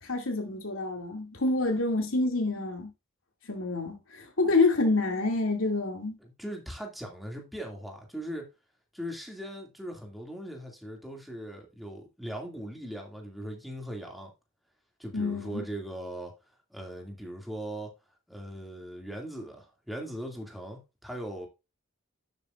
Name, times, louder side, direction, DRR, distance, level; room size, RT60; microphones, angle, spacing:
voice 1, 0.0-2.9 3.5-6.2 15.1-15.6, left 3 dB, 80° left, 2.4 m, -27 dB
voice 2, 6.2-8.5 8.9-14.3 15.0-16.3 16.7-17.9 18.3-21.5, right 1 dB, ahead, 2.3 m, -39 dB
11.5 x 8.0 x 2.5 m
head